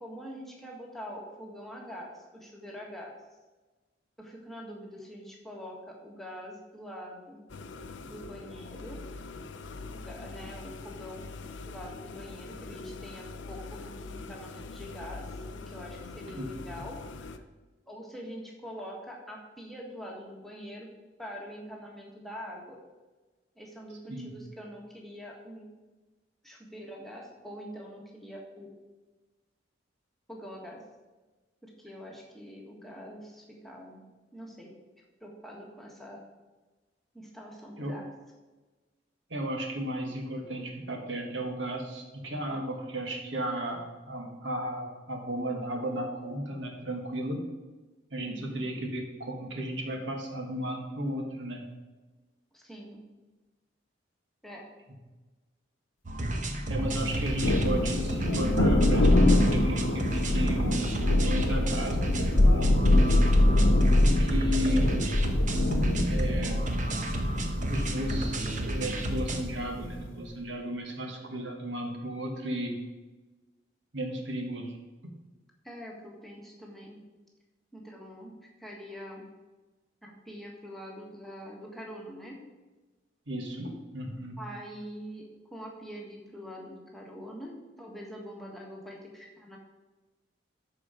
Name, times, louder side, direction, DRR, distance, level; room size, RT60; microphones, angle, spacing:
voice 1, 0.0-3.1 4.2-7.4 8.0-9.0 9.9-11.2 11.7-17.4 17.9-20.9 21.2-22.8 23.6-25.7 26.4-28.7 30.3-30.8 31.6-34.0 34.3-34.7 35.2-36.2 37.1-38.1 48.3-48.6 52.5-53.0 54.4-54.7 75.6-77.0 77.7-79.3 80.0-82.4 84.4-89.6, equal, ahead, -2 dB, 1.5 m, -44 dB
sound 1, 7.5-17.4, left 3 dB, 70° left, 0.6 m, -43 dB
voice 2, 39.3-47.4 48.1-51.6 56.7-63.0 64.0-65.0 66.1-66.6 67.7-72.8 73.9-74.8 75.0-75.1 83.3-84.4, right 1 dB, 70° right, 3 dB, 1.6 m, -34 dB
sound 2, 56.1-69.4, right 1 dB, 40° right, 1.0 m, -31 dB
Thunder, 56.9-70.1, left 1 dB, 90° left, 1.0 m, -25 dB
13.0 x 4.8 x 5.1 m, 1.2 s
head